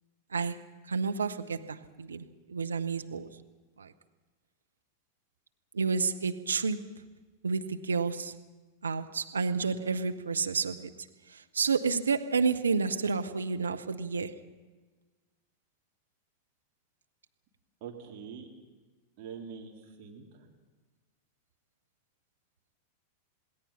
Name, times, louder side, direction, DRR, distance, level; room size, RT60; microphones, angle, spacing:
voice 1, 0.3-3.3 3.8-3.9 5.7-6.9 7.4-8.3 8.8-10.9 11.3-14.4, right 5 dB, 75° right, 1.0 m, -30 dB
voice 2, 17.8-18.5 19.2-19.7 20.0-20.3, right 7 dB, 45° right, 3.6 m, -43 dB
27.0 x 20.0 x 5.8 m
figure-of-eight pair, 90°, 0 cm